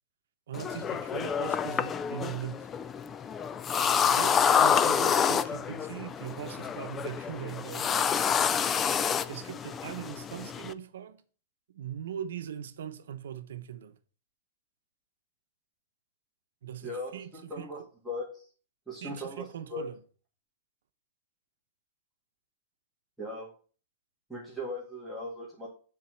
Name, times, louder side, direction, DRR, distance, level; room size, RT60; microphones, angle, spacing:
sound 1, 0.5-10.7, left 7 dB, 20° left, 0.3 m, -28 dB
voice 1, 0.5-2.7 4.0-8.1 9.3-11.2 11.7-14.0 16.6-17.7 19.0-20.0, right 10 dB, 80° right, 0.9 m, -40 dB
voice 2, 16.8-17.8 18.1-18.3 18.9-19.9 23.2-23.5 24.3-25.7, left 1 dB, ahead, 2.0 m, -38 dB
7.3 x 4.2 x 6.3 m
supercardioid pair, 155°, 0 cm